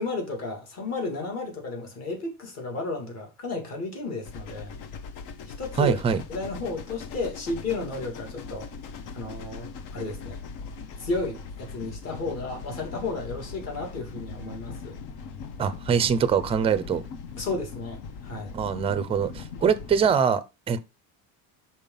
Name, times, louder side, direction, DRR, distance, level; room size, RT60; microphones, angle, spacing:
voice 1, 0.0-4.8 5.6-6.0 6.3-8.7 9.1-10.4 11.0-14.9 17.4-18.5, left 3 dB, 40° left, 2.6 m, -33 dB
sound 1, 4.3-20.1, left 5 dB, 75° left, 1.1 m, -40 dB
voice 2, 5.8-6.2 15.6-17.0 18.5-20.9, right 7 dB, 15° right, 0.4 m, -23 dB
5.3 x 4.5 x 5.5 m
cardioid pair, 175°, 39 cm